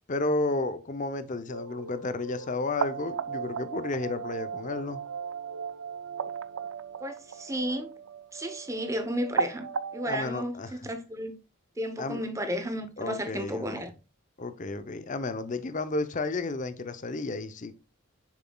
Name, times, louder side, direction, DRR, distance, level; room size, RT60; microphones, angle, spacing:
voice 1, 0.1-5.0 10.0-10.8 12.0-12.2 13.0-13.7 14.4-17.7, left 3 dB, 40° left, 0.6 m, -32 dB
sound 1, 1.5-10.3, right 6 dB, 85° right, 0.4 m, -36 dB
voice 2, 7.0-7.9 8.3-11.4 11.8-13.9, equal, 15° right, 0.8 m, -33 dB
7.1 x 5.8 x 2.3 m
head